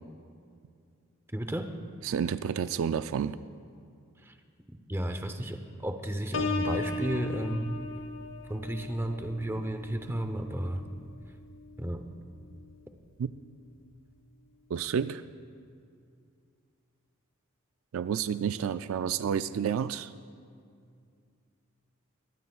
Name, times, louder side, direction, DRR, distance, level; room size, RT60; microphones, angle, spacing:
voice 1, 1.3-1.7 4.2-4.3 4.9-7.8 8.5-10.8 11.8-12.0, right 1 dB, 10° right, 0.7 m, -33 dB
voice 2, 2.0-3.4 13.2-13.3 14.7-15.2 17.9-20.1, right 7 dB, 70° right, 0.3 m, -30 dB
Piano, 6.3-12.0 12.4-12.8, left 3 dB, 60° left, 0.8 m, -37 dB
22.5 x 18.0 x 2.4 m
head